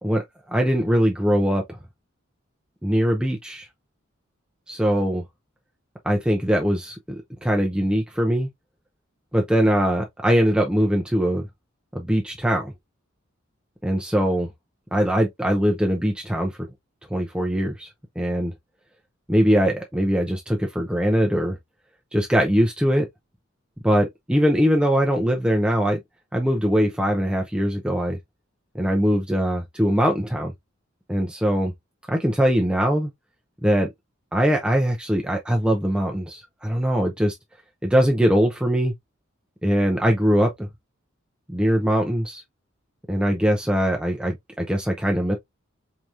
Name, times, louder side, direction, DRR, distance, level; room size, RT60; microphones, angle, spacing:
voice 1, 0.5-1.8 2.8-3.7 4.7-5.2 6.0-8.5 9.3-11.5 11.9-12.7 13.8-14.5 14.9-16.5 17.1-17.9 18.2-18.5 19.3-21.6 22.1-23.1 23.8-26.0 26.3-28.2 28.7-30.5 31.1-31.7 32.1-33.1 33.6-33.9 34.3-37.3 37.8-38.9 39.6-40.7 41.5-42.4 43.1-45.4, equal, 5° right, 0.5 m, -21 dB
4.7 x 2.9 x 2.4 m
head